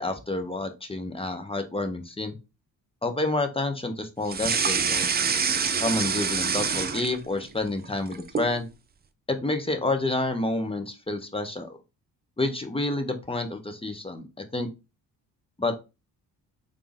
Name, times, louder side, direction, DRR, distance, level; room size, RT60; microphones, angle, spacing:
voice 1, 0.0-2.3 3.0-5.1 5.8-8.7 9.3-11.8 12.4-14.3 14.5-14.7 15.6-15.8, left 2 dB, 10° left, 6 dB, 0.8 m, -29 dB
sound 1, 4.3-7.5 7.8-8.5, right 6 dB, 20° right, 0.5 m, -26 dB
3.4 x 2.6 x 3.3 m, 0.27 s
hypercardioid pair, 45°, 48 cm